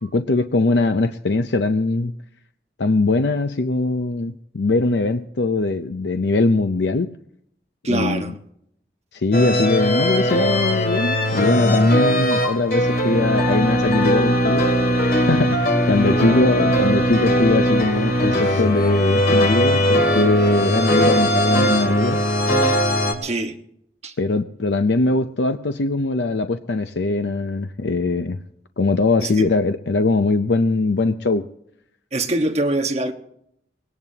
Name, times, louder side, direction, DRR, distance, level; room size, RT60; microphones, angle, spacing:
voice 1, 0.0-2.1 2.8-7.1 7.9-8.3 9.1-14.7 15.0-22.2 24.2-28.4 28.8-31.5, left 3 dB, 80° left, 0.6 m, -21 dB
voice 2, 7.8-8.3 16.0-16.4 23.2-23.6 24.0-24.1 29.2-29.5 32.1-33.1, right 1 dB, 35° right, 1.4 m, -24 dB
sound 1, 9.3-23.1, equal, 55° left, 2.6 m, -19 dB
21.5 x 18.0 x 2.9 m
head